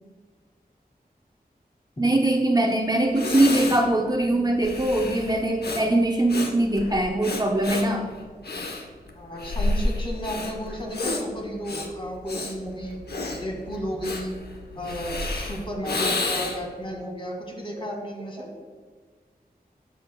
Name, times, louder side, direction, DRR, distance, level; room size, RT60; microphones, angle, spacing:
voice 1, 2.0-8.1 10.8-10.9 12.7-12.8 16.5-16.6 16.9-17.0 17.8-17.9 18.4-18.5, right 1 dB, 25° right, 2 dB, 0.7 m, -22 dB
Breathing, 2.7-2.8 3.1-16.8, left 2 dB, 85° left, 0.8 m, -31 dB
voice 2, 9.2-13.0 13.4-14.4 14.8-18.5, equal, 30° left, 0 dB, 1.8 m, -33 dB
13.0 x 6.5 x 2.2 m, 1.5 s
wide cardioid pair, 75°, 16 cm